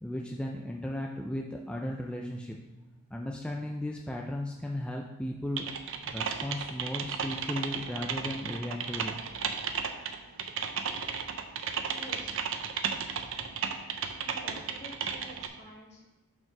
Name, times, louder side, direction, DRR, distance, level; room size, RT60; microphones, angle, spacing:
voice 1, 0.0-2.6 3.1-5.8 6.1-9.1, left 1 dB, 5° left, 0 dB, 0.3 m, -36 dB
Typing, 5.6-15.5, right 6 dB, 60° right, 0.6 m, -34 dB
voice 2, 11.9-12.4 14.1-16.0, equal, 50° left, -4 dB, 2.3 m, -49 dB
6.1 x 4.5 x 5.9 m, 1.2 s
head